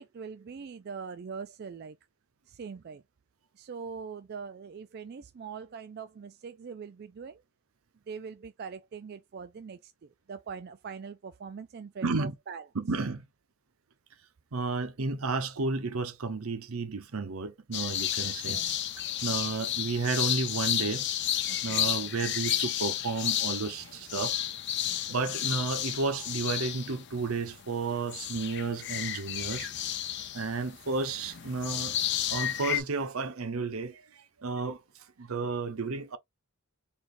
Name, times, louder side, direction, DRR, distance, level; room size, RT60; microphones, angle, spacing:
voice 1, 0.0-2.0 2.5-3.0 3.6-7.4 8.1-12.6 18.2-18.8 21.5-22.0 24.8-25.2, right 6 dB, 45° right, 0.3 m, -42 dB
voice 2, 12.0-12.3 12.7-13.2 14.5-18.6 19.2-21.1 21.6-24.4 25.1-29.7 30.3-32.0 32.3-34.8 35.2-36.2, right 4 dB, 75° right, 0.8 m, -32 dB
sound 1, 17.7-27.8 28.1-32.8, left 11 dB, 50° left, 0.6 m, -32 dB
4.1 x 3.4 x 2.5 m
head